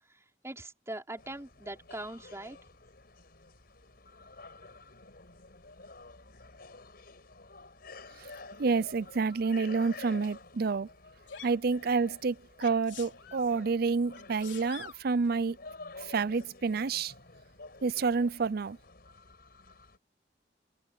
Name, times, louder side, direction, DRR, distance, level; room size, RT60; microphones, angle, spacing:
voice 1, 0.4-2.6, right 1 dB, 15° right, 3.8 m, -41 dB
sound 1, 1.2-20.0, left 3 dB, 55° left, 5.9 m, -51 dB
voice 2, 8.6-10.9 11.4-15.6 16.0-17.1 17.8-18.8, right 4 dB, 55° right, 0.5 m, -29 dB
Sneeze, 11.3-11.6 12.6-13.5 14.1-15.0 16.3-16.5, left 7 dB, 70° left, 4.3 m, -47 dB
head